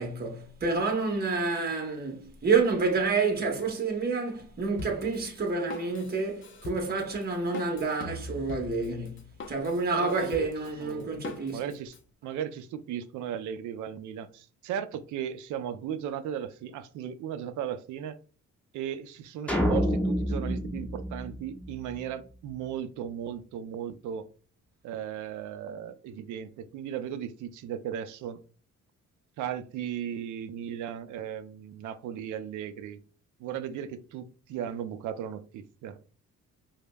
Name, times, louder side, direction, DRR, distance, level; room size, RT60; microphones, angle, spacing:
voice 1, 0.0-9.2 9.5-11.6, right 4 dB, 30° right, 1.0 m, -28 dB
Drum kit, 4.8-12.0, left 3 dB, 40° left, 0.6 m, -42 dB
voice 2, 10.0-10.3 10.8-11.2 11.5-12.0 12.2-18.2 18.7-24.3 24.8-28.4 29.4-33.0 33.4-36.0, right 9 dB, 80° right, 0.5 m, -36 dB
sound 1, 19.5-21.9, equal, 5° left, 0.8 m, -28 dB
5.0 x 2.1 x 2.2 m
cardioid pair, 90°, 30 cm